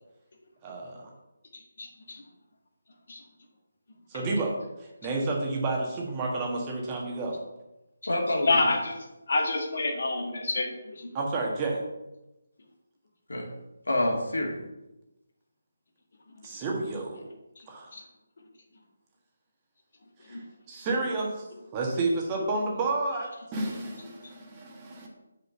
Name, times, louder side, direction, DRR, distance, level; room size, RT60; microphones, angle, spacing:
voice 1, 0.6-1.1 4.1-7.4 11.1-11.8 16.4-17.3 17.7-17.9 20.3-20.4 20.7-21.5 21.7-25.1, right 2 dB, 20° right, -1 dB, 1.6 m, -30 dB
voice 2, 1.5-2.2 3.1-3.2 8.4-8.9 9.3-11.1 17.9-18.0 20.3-20.4, left 2 dB, 55° left, 1 dB, 1.9 m, -28 dB
voice 3, 8.1-8.8 13.3-13.5 13.9-14.6, left 1 dB, 70° left, 0 dB, 2.3 m, -28 dB
6.1 x 5.6 x 6.9 m, 0.97 s
figure-of-eight pair, 150°, 0 cm